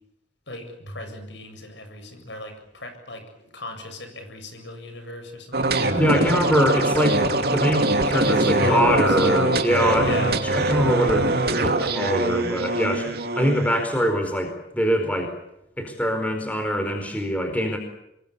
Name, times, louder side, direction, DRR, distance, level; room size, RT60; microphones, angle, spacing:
voice 1, 0.5-6.2 8.1-9.6 10.0-10.4, left 2 dB, 70° left, 7 dB, 7.6 m, -37 dB
sound 1, 5.5-13.8, right 2 dB, 55° right, 2.8 m, -23 dB
voice 2, 6.0-15.3 15.8-17.8, equal, 10° left, 5 dB, 4.4 m, -23 dB
26.5 x 22.0 x 8.5 m, 0.82 s
head